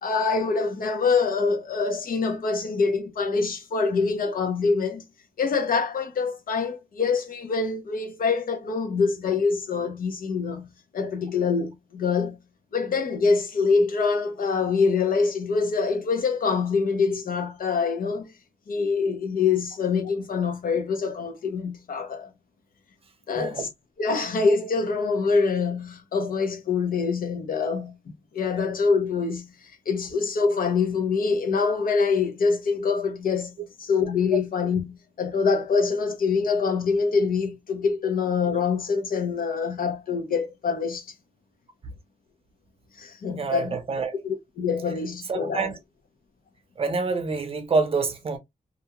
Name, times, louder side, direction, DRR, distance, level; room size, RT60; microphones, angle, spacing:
voice 1, 0.0-5.1 5.4-12.4 12.7-18.3 18.7-22.3 23.3-23.7 24.0-28.0 28.3-29.5 29.9-41.1 43.0-43.8 44.2-45.7, left 5 dB, 80° left, 0.7 m, -25 dB
voice 2, 23.4-23.7 34.3-34.4 43.3-44.1 45.3-45.7 46.8-48.4, right 4 dB, 40° right, 0.6 m, -27 dB
2.5 x 2.2 x 2.8 m
wide cardioid pair, 160°, 15 cm